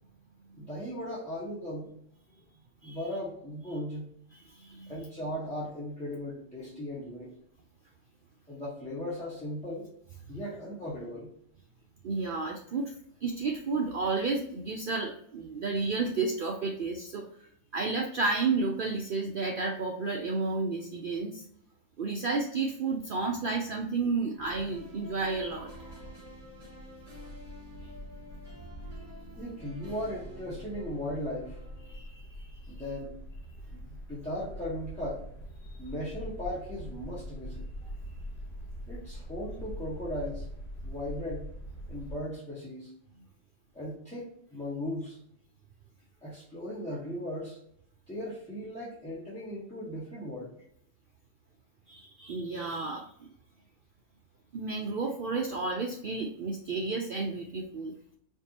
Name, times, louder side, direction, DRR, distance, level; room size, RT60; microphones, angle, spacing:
voice 1, 0.6-1.9 2.8-4.1 4.9-7.3 8.5-9.9 10.3-11.3 29.4-31.6 32.7-33.1 33.7-35.2 35.6-37.6 38.9-40.4 40.8-41.5 41.9-42.9 43.7-45.2 46.2-47.6 48.1-50.5, left 1 dB, 5° left, -9 dB, 1.0 m, -37 dB
voice 2, 4.3-4.9 12.0-12.9 13.2-17.3 17.7-21.4 22.0-25.7 31.8-32.2 51.9-53.3 54.5-57.9, right 3 dB, 75° right, 1 dB, 0.4 m, -31 dB
sound 1, 24.3-42.2, equal, 35° left, 0.7 m, -44 dB
sound 2, 24.7-32.1, left 2 dB, 55° right, 2.1 m, -50 dB
4.5 x 2.7 x 2.8 m, 0.67 s
omnidirectional pair, 1.5 m